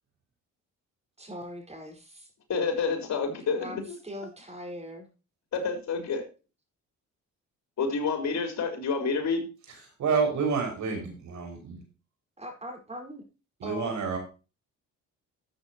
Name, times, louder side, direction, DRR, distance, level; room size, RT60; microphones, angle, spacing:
voice 1, 1.2-2.3 3.6-5.1 10.9-11.2 12.4-13.3 13.6-14.0, left 1 dB, 20° right, 2 dB, 5.2 m, -41 dB
voice 2, 2.5-4.0 5.5-6.2 7.8-9.5, left 4 dB, 65° left, 4 dB, 4.4 m, -28 dB
voice 3, 10.0-11.8 13.6-14.2, right 5 dB, 70° right, 3 dB, 5.8 m, -28 dB
13.0 x 8.3 x 3.0 m, 0.31 s
cardioid pair, 90°, 30 cm